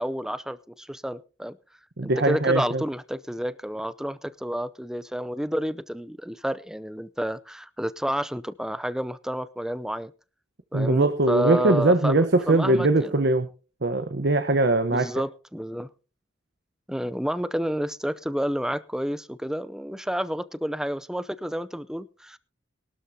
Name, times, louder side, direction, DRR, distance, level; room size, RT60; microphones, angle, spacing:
voice 1, 0.0-1.6 2.0-10.1 10.7-13.1 14.9-15.9 16.9-22.4, equal, 5° right, 15 dB, 0.5 m, -30 dB
voice 2, 2.0-2.8 10.7-13.5 13.8-15.1, right 2 dB, 60° right, 8 dB, 1.0 m, -21 dB
21.5 x 12.5 x 2.8 m, 0.35 s
head